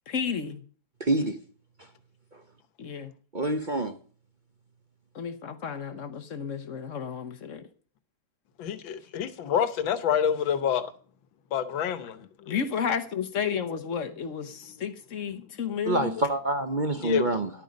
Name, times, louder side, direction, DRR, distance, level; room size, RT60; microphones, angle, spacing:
voice 1, 0.1-0.6 2.8-3.1 5.1-7.6 8.9-9.1 12.5-16.1, left 7 dB, 50° left, 1.2 m, -32 dB
voice 2, 1.0-1.4 3.3-4.0 15.9-17.5, right 2 dB, 40° right, 0.7 m, -26 dB
voice 3, 8.6-10.9 11.5-12.6 17.0-17.3, left 8 dB, 80° left, 1.7 m, -27 dB
11.5 x 9.0 x 5.2 m
omnidirectional pair, 2.1 m